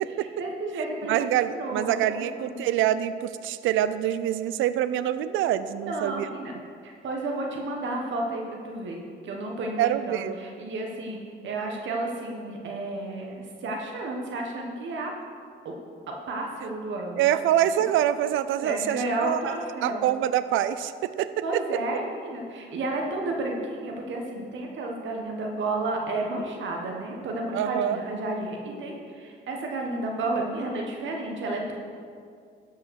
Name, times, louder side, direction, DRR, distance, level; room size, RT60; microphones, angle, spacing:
voice 1, 0.2-2.6 5.8-6.5 6.8-15.1 15.6-15.7 16.1-17.3 18.6-20.0 21.4-31.7, right 2 dB, 70° right, 1 dB, 1.4 m, -32 dB
voice 2, 1.1-6.3 9.8-10.4 17.2-19.5 19.8-21.3 27.5-28.0, right 11 dB, 90° right, 13 dB, 0.5 m, -25 dB
13.0 x 5.5 x 6.3 m, 2.2 s
cardioid pair, 90°, 20 cm